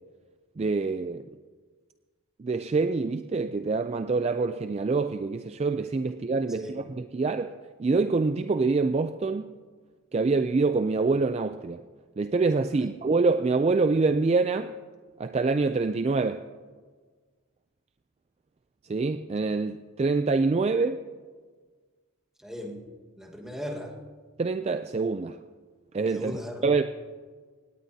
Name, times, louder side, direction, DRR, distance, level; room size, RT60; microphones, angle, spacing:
voice 1, 0.6-1.3 2.4-6.8 7.1-7.5 7.8-9.4 10.1-11.8 12.2-14.7 15.2-16.4 18.9-21.0 24.4-25.4 25.9-26.3 26.6-26.8, right 3 dB, 30° right, 9 dB, 0.3 m, -25 dB
voice 2, 6.5-6.8 12.8-12.9 22.4-22.9 23.2-24.0 26.1-26.7, equal, ahead, 1 dB, 1.4 m, -38 dB
18.0 x 18.0 x 2.8 m, 1.5 s
head